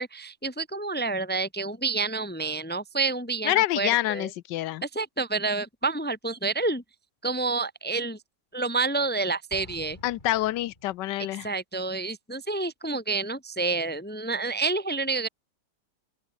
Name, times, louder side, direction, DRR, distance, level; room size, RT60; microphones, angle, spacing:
voice 1, 0.0-4.3 4.8-6.8 7.2-8.2 8.5-10.0 11.4-15.3, right 3 dB, 5° left, 1.5 m, -29 dB
voice 2, 3.4-4.8 10.0-11.5, left 15 dB, 75° left, 1.3 m, -26 dB
Explosion, 9.5-11.2, left 2 dB, 25° left, 4.3 m, -48 dB
open air
omnidirectional pair, 2.0 m